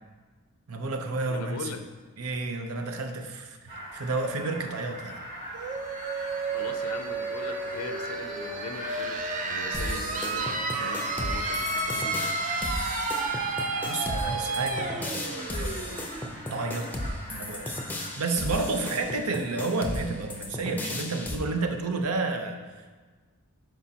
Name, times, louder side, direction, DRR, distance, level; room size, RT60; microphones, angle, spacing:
voice 1, 0.7-1.8 2.2-5.2 13.8-15.0 15.5-16.0 16.5-17.0 17.3-17.8 18.2-22.6, right 3 dB, 75° right, 5 dB, 0.7 m, -31 dB
voice 2, 1.3-1.8 6.5-12.4 14.1-14.6, left 4 dB, 75° left, 7 dB, 0.5 m, -41 dB
sound 1, 3.7-18.2, equal, 55° right, 1.9 m, -42 dB
sound 2, 5.5-17.1, right 3 dB, 35° right, 0.6 m, -32 dB
sound 3, 9.7-21.4, left 1 dB, 10° left, 0.6 m, -35 dB
10.0 x 4.7 x 2.8 m, 1.4 s
head